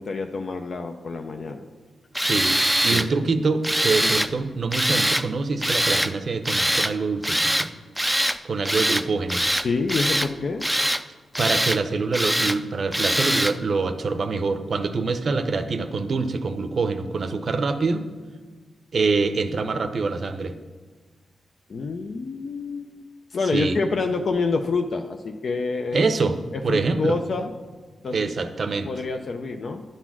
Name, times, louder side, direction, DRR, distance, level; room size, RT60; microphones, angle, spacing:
voice 1, 0.0-1.7 2.9-3.1 4.0-4.1 9.4-10.7 21.7-26.1 26.5-27.5 28.0-28.3 28.8-29.8, left 4 dB, 60° left, 5 dB, 0.4 m, -27 dB
Tools, 2.1-3.1 3.6-4.3 4.7-5.2 5.6-6.1 6.4-6.9 7.2-7.7 8.0-8.4 8.7-9.0 9.3-10.3 10.6-11.0 11.3-11.8 12.1-12.6 12.9-13.5, equal, 5° right, 0.4 m, -23 dB
voice 2, 2.2-7.7 8.4-9.5 11.4-18.0 18.9-20.5 23.5-23.8 25.9-26.4 26.6-27.2 28.1-28.9, right 4 dB, 55° right, 9 dB, 0.6 m, -25 dB
10.0 x 4.1 x 6.0 m, 1.4 s
cardioid pair, 75°, 0 cm